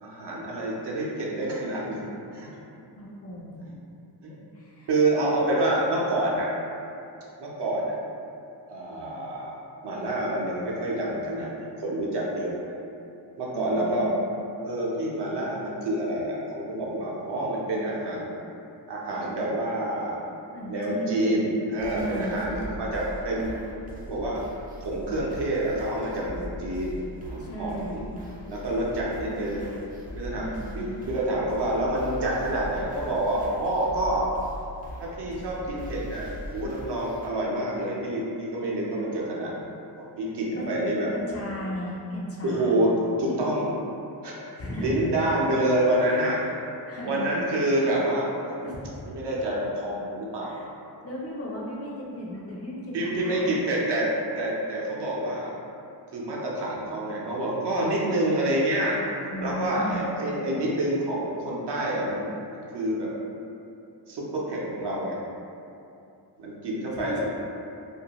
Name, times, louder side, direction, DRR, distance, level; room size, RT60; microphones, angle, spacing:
voice 1, 0.0-2.0 2.3-2.5 3.6-3.8 4.2-4.4 4.9-6.5 7.4-8.0 8.7-9.5 9.8-12.7 13.4-14.1 14.6-18.2 18.9-20.2 20.7-23.5 24.0-24.4 24.8-27.0 27.3-28.0 28.5-29.7 30.1-30.4 30.7-34.3 35.0-39.7 40.0-41.1 42.4-43.7 44.2-44.4 44.8-46.4 47.0-48.6 49.1-50.6 52.9-54.1 54.4-55.5 56.1-59.0 59.4-63.1 64.1-65.2 66.4-67.3, right 1 dB, 65° right, -4 dB, 0.7 m, -27 dB
voice 2, 3.0-3.5 4.5-5.2 13.5-14.2 20.5-21.3 21.9-22.4 27.4-28.0 30.4-30.9 40.5-40.8 41.1-42.7 44.5-45.0 45.3-45.4 46.0-46.6 46.9-47.5 48.6-49.1 50.4-50.7 51.0-53.7 59.3-60.0 67.0-67.3, equal, 35° left, -5 dB, 0.5 m, -36 dB
sound 1, 21.8-37.3, equal, 20° right, 0.4 m, -40 dB
2.5 x 2.2 x 2.8 m, 2.7 s
cardioid pair, 75°, 44 cm